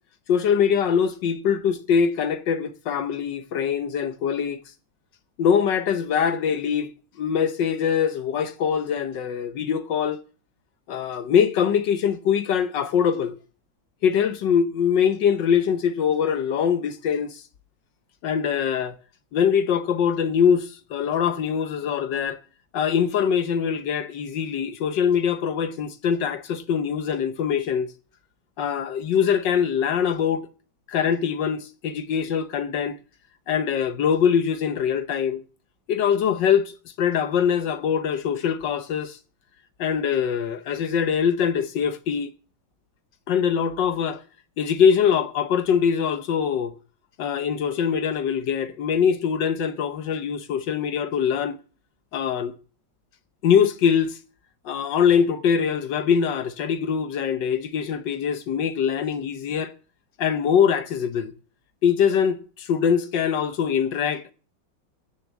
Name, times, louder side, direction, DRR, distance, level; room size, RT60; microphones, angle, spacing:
voice 1, 0.3-4.6 5.4-6.9 7.2-10.2 10.9-13.4 14.0-17.4 18.2-19.0 19.3-22.4 22.7-27.9 28.6-30.4 30.9-33.0 33.5-35.4 35.9-39.2 39.8-42.3 43.3-44.2 44.6-46.7 47.2-51.6 52.1-52.5 53.4-54.2 54.6-59.7 60.2-61.3 61.8-64.3, left 7 dB, 70° left, 1.5 m, -23 dB
15.0 x 6.9 x 8.2 m
omnidirectional pair, 2.1 m